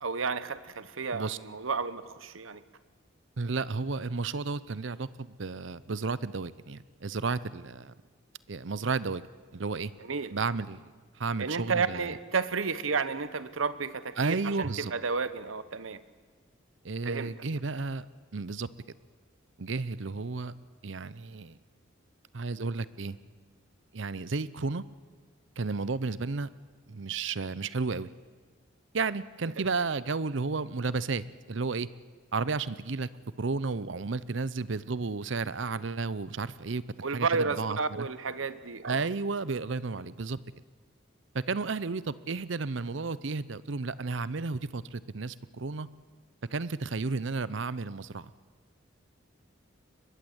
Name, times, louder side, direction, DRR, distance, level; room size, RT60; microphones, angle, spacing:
voice 1, 0.0-2.6 10.0-10.3 11.4-16.0 17.0-17.3 29.5-29.6 37.0-39.1, right 4 dB, 85° right, 14 dB, 1.1 m, -32 dB
voice 2, 3.4-7.9 8.5-9.2 9.5-9.9 10.3-10.8 11.2-12.1 14.2-14.9 16.8-18.0 18.3-18.7 19.6-20.5 20.8-21.6 22.3-23.2 23.9-24.8 25.6-26.5 26.9-28.1 28.9-31.9 32.3-33.1 33.4-36.8 37.1-38.1 38.8-40.4 41.3-45.9 46.5-48.3, right 4 dB, 70° right, 17 dB, 0.7 m, -32 dB
22.5 x 21.0 x 8.1 m, 1.5 s
head